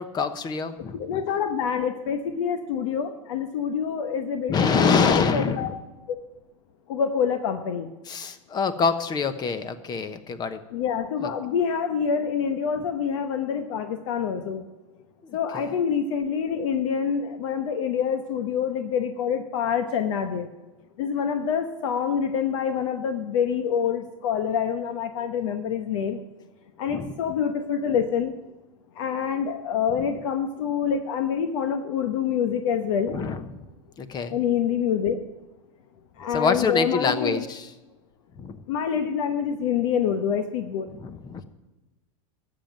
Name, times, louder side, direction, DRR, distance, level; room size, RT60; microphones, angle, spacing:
voice 1, 0.0-1.2 4.5-5.7 8.1-10.6 11.2-11.3 15.2-15.7 26.9-27.1 33.1-33.4 34.0-34.4 36.3-37.7 38.4-38.6 41.0-41.4, left 5 dB, 25° left, 12 dB, 1.0 m, -26 dB
voice 2, 0.9-5.7 6.1-6.2 6.9-7.9 10.7-14.6 15.3-20.5 21.0-26.2 26.8-28.3 29.0-33.2 34.3-35.2 36.2-37.4 38.7-40.9, left 7 dB, 65° left, 7 dB, 1.1 m, -26 dB
13.0 x 7.4 x 9.2 m, 1.1 s
supercardioid pair, 135°, 17 cm